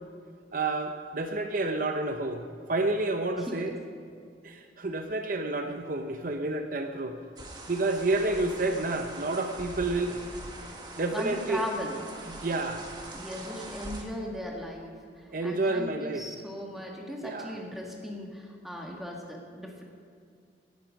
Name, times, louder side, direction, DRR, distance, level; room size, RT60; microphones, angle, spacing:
voice 1, 0.5-2.4 2.7-3.7 4.4-7.2 7.7-10.2 11.0-11.6 12.3-12.9 15.3-16.3 17.2-17.6, right 2 dB, 50° right, 5 dB, 0.8 m, -29 dB
sound 1, 7.4-14.0, right 1 dB, 25° right, 1.5 m, -43 dB
voice 2, 11.1-12.0 13.1-19.8, equal, ahead, -1 dB, 1.9 m, -38 dB
17.5 x 10.5 x 5.3 m, 2.3 s
head